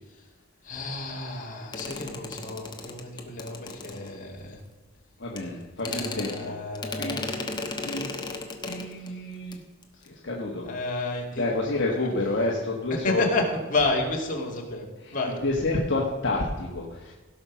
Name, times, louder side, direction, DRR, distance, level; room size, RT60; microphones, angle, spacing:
voice 1, 0.6-4.6 5.9-7.3 7.6-7.8 10.6-11.4 11.7-12.1 13.0-14.9 15.1-15.4, left 2 dB, 40° left, -1 dB, 2.3 m, -30 dB
sound 1, 1.7-4.5 5.4-5.5 5.8-9.1 9.4-9.6 9.8-10.1, left 3 dB, 20° left, 1.1 m, -35 dB
voice 2, 5.2-6.5 7.0-7.2 7.8-8.1 8.6-9.6 10.0-10.6 11.3-13.5 15.0-15.2 15.4-17.1, left 2 dB, 55° left, -2 dB, 1.5 m, -29 dB
16.5 x 5.8 x 6.1 m, 1.2 s
head